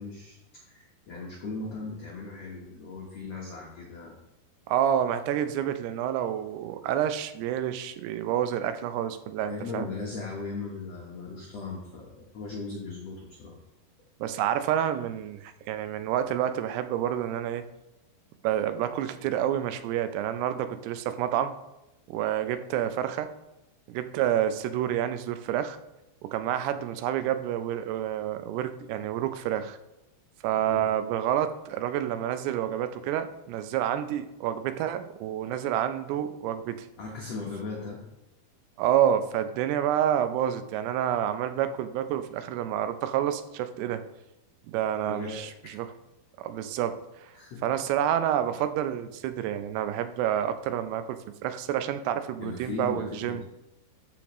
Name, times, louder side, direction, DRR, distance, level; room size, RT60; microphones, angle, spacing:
voice 1, 0.0-4.2 9.4-13.6 30.5-30.9 37.0-38.0 45.0-45.7 47.3-47.6 52.4-53.4, left 3 dB, 75° left, -3 dB, 1.5 m, -38 dB
voice 2, 4.7-9.9 14.2-17.6 18.4-21.5 22.1-23.3 23.9-25.8 26.2-29.8 30.4-36.9 38.8-44.0 44.7-45.9 46.4-47.3 47.6-53.4, right 10 dB, 85° right, 10 dB, 2.7 m, -28 dB
13.5 x 5.3 x 3.0 m, 0.93 s
omnidirectional pair, 4.7 m